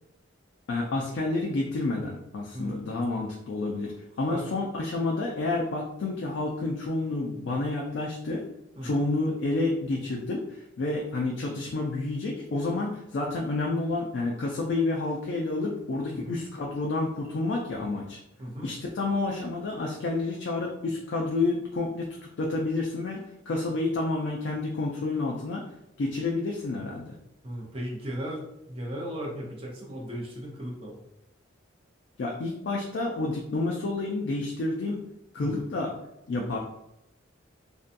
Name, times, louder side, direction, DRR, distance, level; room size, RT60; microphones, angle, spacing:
voice 1, 0.7-3.9 4.2-8.5 8.8-18.2 18.6-25.7 26.0-27.2 32.2-35.0 35.3-35.9 36.3-36.6, left 2 dB, 60° left, -1 dB, 0.3 m, -29 dB
voice 2, 16.1-16.4 18.4-18.7 27.4-31.0 35.4-35.6, equal, 30° right, -2 dB, 0.5 m, -36 dB
2.6 x 2.2 x 2.5 m, 0.85 s
head